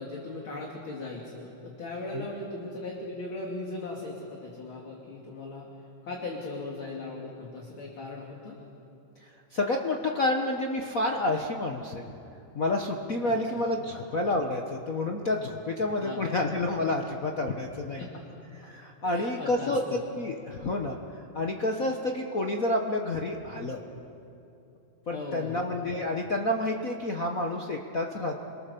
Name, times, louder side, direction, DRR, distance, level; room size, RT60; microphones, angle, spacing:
voice 1, 0.0-5.7 6.0-8.6 13.2-13.3 13.9-14.0 16.0-16.2 18.0-18.1 19.0-20.0 25.1-25.6, left 2 dB, 45° left, -1 dB, 3.0 m, -38 dB
voice 2, 9.5-12.0 12.5-18.1 18.6-21.0 21.3-23.8 25.1-28.4, left 2 dB, 80° left, 2 dB, 0.7 m, -29 dB
29.0 x 23.0 x 6.9 m, 2.8 s
omnidirectional pair, 3.5 m